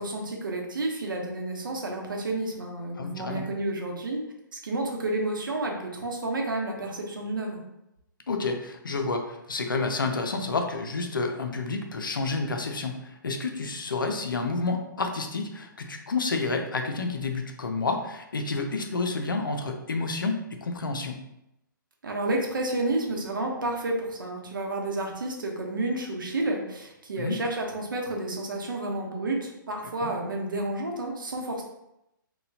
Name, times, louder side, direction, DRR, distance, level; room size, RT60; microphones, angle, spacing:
voice 1, 0.0-4.2 4.5-7.6 22.0-31.6, right 2 dB, 70° right, 1 dB, 0.8 m, -30 dB
voice 2, 2.9-3.5 8.3-21.2 27.2-27.4 30.0-30.1, left 3 dB, 70° left, 4 dB, 0.5 m, -30 dB
3.9 x 2.3 x 2.7 m, 0.85 s
figure-of-eight pair, 125°, 11 cm